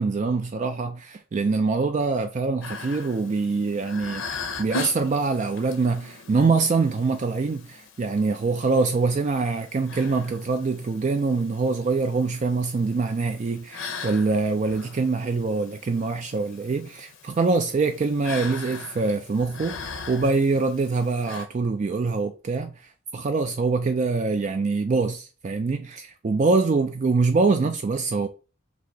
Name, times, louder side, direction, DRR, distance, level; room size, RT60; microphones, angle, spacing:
voice 1, 0.0-4.2 4.6-19.8 20.1-28.3, right 4 dB, 35° right, 0.3 m, -24 dB
sound 1, 2.6-21.5, left 3 dB, 80° left, 0.8 m, -40 dB
4.1 x 2.8 x 4.5 m
head